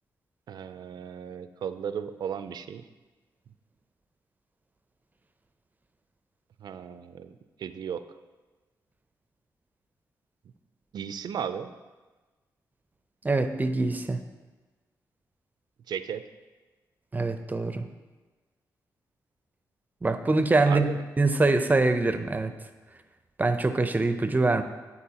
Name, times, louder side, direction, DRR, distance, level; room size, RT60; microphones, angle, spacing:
voice 1, 0.5-2.8 6.6-8.0 10.9-11.7 15.9-16.2 20.6-21.0, right 8 dB, 75° right, 11 dB, 0.4 m, -35 dB
voice 2, 13.2-14.2 17.1-17.8 20.0-20.9 21.2-22.5 23.4-24.6, right 3 dB, 25° right, 9 dB, 0.6 m, -24 dB
12.5 x 4.2 x 2.9 m, 1.3 s
cardioid pair, 65°, 7 cm